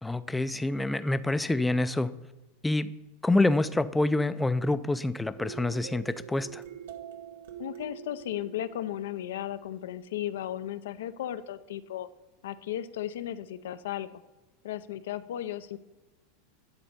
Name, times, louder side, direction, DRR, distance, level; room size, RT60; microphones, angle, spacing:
voice 1, 0.0-2.1 2.6-2.9 3.2-6.6, left 2 dB, 5° left, 14 dB, 0.3 m, -27 dB
sound 1, 5.4-9.8, right 9 dB, 80° right, 0.9 m, -44 dB
voice 2, 7.6-12.1 12.4-14.1 14.6-15.8, left 12 dB, 80° left, 13 dB, 0.4 m, -35 dB
10.5 x 4.1 x 5.3 m, 1.1 s
hypercardioid pair, 115°, 0 cm